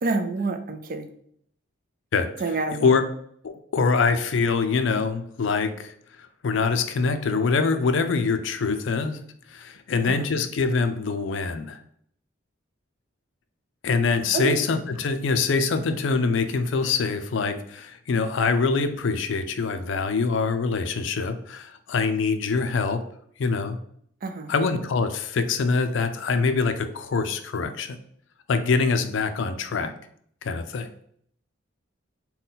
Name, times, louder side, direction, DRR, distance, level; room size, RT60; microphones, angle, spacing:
voice 1, 0.0-1.1 2.4-2.9 10.1-10.3 14.3-14.6 24.2-24.5, right 3 dB, 45° right, 8 dB, 0.4 m, -28 dB
voice 2, 2.7-3.0 3.4-9.2 9.5-11.8 13.8-23.0 23.4-23.8 24.5-28.0 28.5-29.9 30.4-30.9, left 4 dB, 70° left, 9 dB, 0.4 m, -24 dB
3.8 x 2.2 x 3.9 m, 0.65 s
head